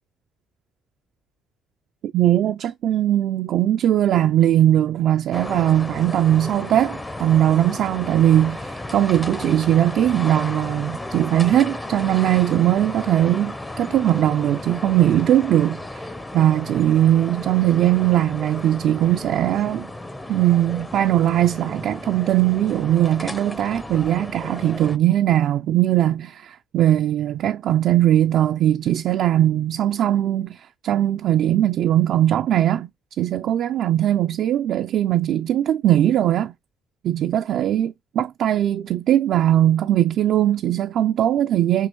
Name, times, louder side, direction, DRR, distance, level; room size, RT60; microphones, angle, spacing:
voice 1, 2.1-16.0 16.3-19.9 20.3-30.6 30.8-32.9 33.2-36.5 37.0-41.9, right 12 dB, 65° right, 0.3 m, -20 dB
sound 1, 5.3-25.0, left 1 dB, 20° left, 0.7 m, -34 dB
6.1 x 2.4 x 3.0 m
supercardioid pair, 60°, 0 cm